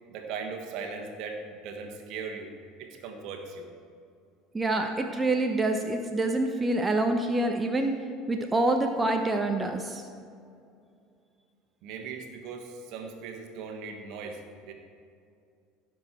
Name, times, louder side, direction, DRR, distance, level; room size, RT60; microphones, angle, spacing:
voice 1, 0.1-2.5 2.8-3.7 11.8-14.7, right 5 dB, 60° right, 3 dB, 1.4 m, -39 dB
voice 2, 4.5-8.0 8.3-10.0, right 2 dB, 15° right, 4 dB, 0.9 m, -26 dB
16.0 x 6.3 x 4.5 m, 2.4 s
figure-of-eight pair, 70°, 0 cm